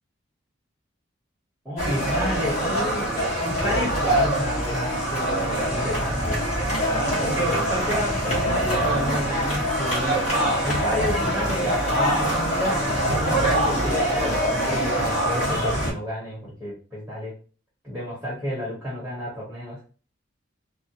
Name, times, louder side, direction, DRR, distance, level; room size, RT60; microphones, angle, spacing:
voice 1, 1.6-3.1 3.4-6.5 7.2-10.2 10.6-17.3 17.8-19.8, equal, 5° right, -7 dB, 1.0 m, -30 dB
sound 1, 1.8-15.9, right 1 dB, 35° left, 1.5 m, -24 dB
3.5 x 2.2 x 2.8 m, 0.37 s
head